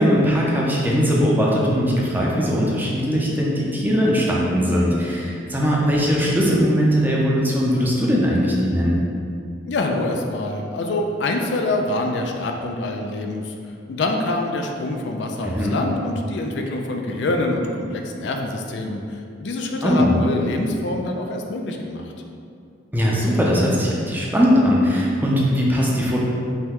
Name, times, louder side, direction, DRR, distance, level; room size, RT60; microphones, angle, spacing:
voice 1, 0.0-9.0 15.4-15.8 19.8-20.2 22.9-26.2, equal, 10° right, -4 dB, 0.5 m, -20 dB
voice 2, 9.7-13.5 13.9-22.1, left 2 dB, 65° left, 2 dB, 0.4 m, -25 dB
5.5 x 2.2 x 3.6 m, 2.4 s
head